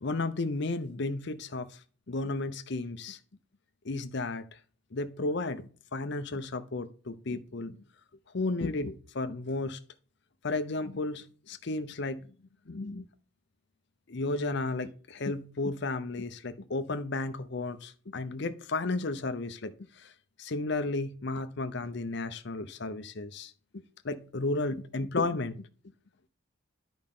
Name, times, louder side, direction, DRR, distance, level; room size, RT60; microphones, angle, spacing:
voice 1, 0.0-1.7 2.1-3.2 3.8-4.5 4.9-7.8 8.3-9.8 10.4-12.2 12.7-13.0 14.1-19.7 20.0-20.1 20.4-23.5 24.0-25.6, left 2 dB, 55° left, 0.7 m, -33 dB
10.5 x 5.2 x 3.7 m
head